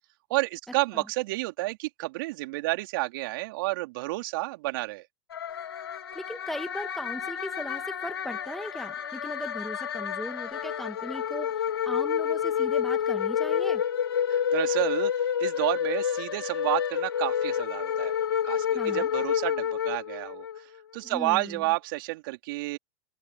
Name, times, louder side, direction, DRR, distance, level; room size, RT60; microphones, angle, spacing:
voice 1, 0.3-5.0 14.3-18.1 18.4-20.5 20.9-22.8, right 21 dB, 65° right, 3.6 m, -30 dB
sound 1, 5.3-20.6, left 8 dB, 90° left, 4.1 m, -29 dB
voice 2, 6.1-13.8 18.7-19.1 21.0-21.6, equal, ahead, 2.3 m, -38 dB
hypercardioid pair, 105°, 12 cm